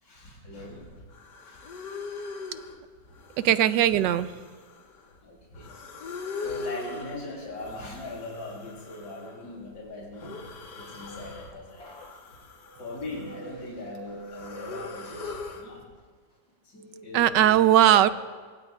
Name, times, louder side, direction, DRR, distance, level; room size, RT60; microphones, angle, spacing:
voice 1, 0.0-0.9 1.4-1.6 5.2-5.7 6.4-10.4 10.7-12.0 12.8-15.9 16.6-18.1, left 2 dB, 60° left, -4 dB, 3.7 m, -40 dB
sound 1, 0.8-0.9 1.1-2.8 3.2-5.2 5.5-7.2 7.6-9.5 10.1-11.5 11.8-13.6 13.9-15.7, left 4 dB, 75° left, 2.0 m, -41 dB
voice 2, 3.4-4.3 17.1-18.1, right 11 dB, 80° right, 13 dB, 1.3 m, -19 dB
sound 2, 10.5-15.5 15.9-16.4, right 4 dB, 35° left, 3.6 m, -47 dB
24.5 x 24.0 x 2.4 m, 1.6 s
omnidirectional pair, 1.9 m